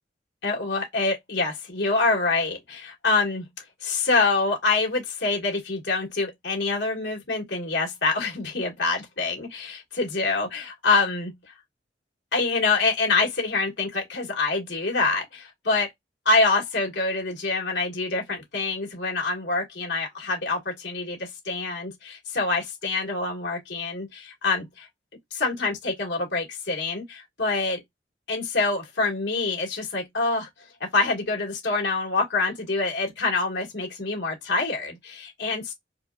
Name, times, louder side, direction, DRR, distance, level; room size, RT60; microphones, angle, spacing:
voice 1, 0.4-3.4 3.8-11.3 12.3-15.9 16.2-24.9 25.3-27.8 28.3-30.5 30.8-35.7, left 3 dB, 70° left, 1.7 m, -26 dB
4.1 x 2.4 x 2.3 m
head